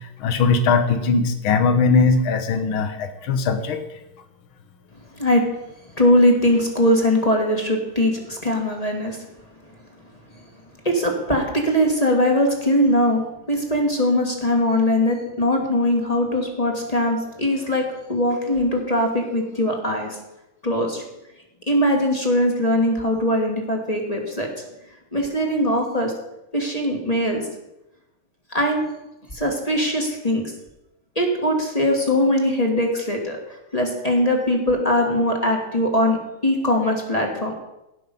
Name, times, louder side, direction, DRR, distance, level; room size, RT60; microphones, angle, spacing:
voice 1, 0.0-3.8, left 4 dB, 70° left, 7 dB, 1.9 m, -20 dB
voice 2, 6.0-9.2 10.8-20.2 20.6-21.0 21.7-24.5 25.1-26.1 26.5-27.5 28.5-28.8 29.3-30.5 31.1-33.4 33.7-36.2 36.4-37.5, left 1 dB, 20° left, 1 dB, 1.5 m, -21 dB
17.0 x 5.9 x 5.3 m, 0.93 s
omnidirectional pair, 2.4 m